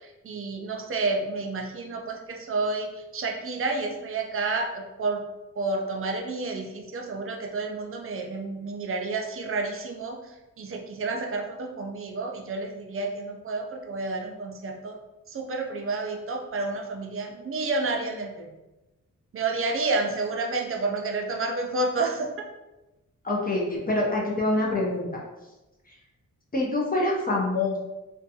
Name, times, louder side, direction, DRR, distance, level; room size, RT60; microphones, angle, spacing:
voice 1, 0.2-2.9 3.1-5.2 5.6-10.2 10.6-15.0 15.3-18.5 19.3-22.5, right 3 dB, 45° right, 2 dB, 0.4 m, -30 dB
voice 2, 23.2-25.1 25.9-26.0 26.5-27.8, left 2 dB, 30° left, -3 dB, 0.5 m, -25 dB
2.5 x 2.2 x 2.7 m, 1.0 s
wide cardioid pair, 135°, 32 cm